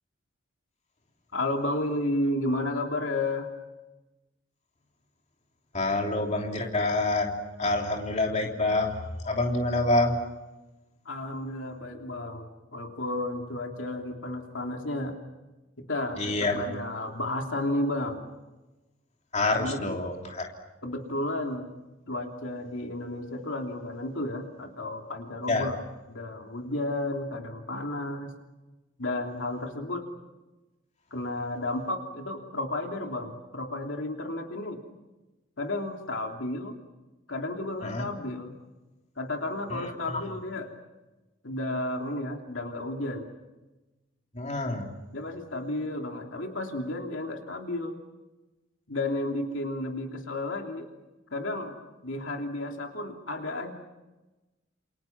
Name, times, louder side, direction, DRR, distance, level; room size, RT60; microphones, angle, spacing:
voice 1, 1.3-3.5 11.0-15.1 15.8-18.2 19.6-20.1 20.8-21.7 22.1-25.8 26.1-28.3 29.0-30.1 31.1-34.8 35.6-36.8 37.3-38.5 39.2-40.7 41.4-43.2 45.1-48.0 48.9-50.9 51.3-51.7 52.0-53.7, left 1 dB, 65° left, 2 dB, 3.1 m, -32 dB
voice 2, 5.7-7.3 7.6-9.0 9.2-10.1 16.2-16.6 19.3-20.5 25.5-25.7 37.8-38.0 39.7-40.2 44.3-44.9, left 2 dB, 35° left, 1 dB, 3.3 m, -27 dB
29.0 x 28.5 x 6.0 m, 1.1 s
head